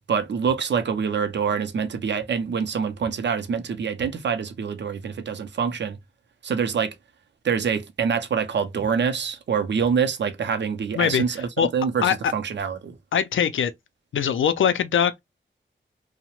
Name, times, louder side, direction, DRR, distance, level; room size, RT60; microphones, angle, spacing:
voice 1, 0.1-6.0 6.4-6.9 7.4-12.9, right 6 dB, 65° right, 0.5 m, -25 dB
voice 2, 12.0-12.3 13.1-13.7 14.1-15.2, left 8 dB, 85° left, 0.4 m, -22 dB
2.8 x 2.0 x 2.9 m
wide cardioid pair, 105°, 20 cm